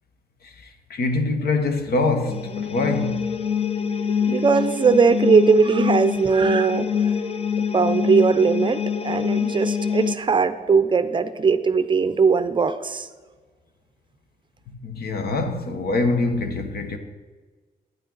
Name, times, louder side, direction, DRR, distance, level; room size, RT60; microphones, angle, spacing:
voice 1, 0.9-3.2 14.8-17.0, left 3 dB, 80° left, 1.2 m, -24 dB
sound 1, 2.3-10.2, left 7 dB, 40° left, 0.6 m, -25 dB
voice 2, 4.3-7.1 7.7-13.1, right 5 dB, 30° right, 0.5 m, -19 dB
11.5 x 9.3 x 3.9 m
wide cardioid pair, 140°, 16 cm